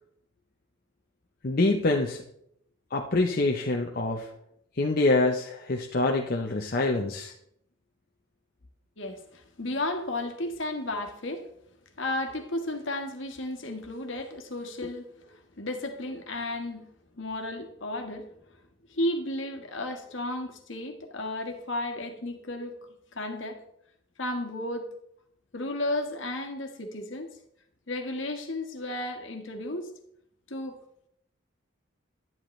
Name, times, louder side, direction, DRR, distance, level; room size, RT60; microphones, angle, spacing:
voice 1, 1.4-2.2 2.9-4.3 4.8-7.3 14.8-14.9, left 2 dB, 50° left, 1 dB, 0.7 m, -25 dB
voice 2, 9.0-11.5 12.0-16.9 17.2-18.3 18.9-23.6 24.2-24.9 25.5-27.3 27.9-29.9 30.5-30.8, left 1 dB, 70° left, 5 dB, 1.5 m, -33 dB
10.5 x 10.5 x 3.2 m, 0.72 s
head